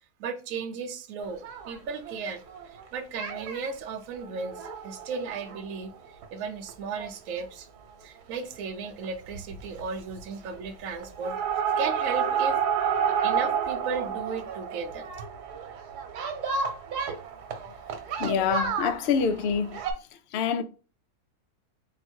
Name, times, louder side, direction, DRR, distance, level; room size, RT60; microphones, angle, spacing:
voice 1, 0.2-5.9 6.3-7.7 8.0-11.4 11.8-12.6 13.0-15.1, right 5 dB, 65° right, 1.0 m, -35 dB
sound 1, 1.3-2.8 3.2-3.7 4.2-6.2 6.7-6.8 7.0-7.1 7.4-7.5 8.8-9.1 9.3-9.8 10.1-10.6 11.0-19.9, right 7 dB, 90° right, 1.3 m, -30 dB
voice 2, 18.2-19.8 20.3-20.6, left 7 dB, 75° left, 0.5 m, -26 dB
3.7 x 2.5 x 4.3 m
omnidirectional pair, 1.6 m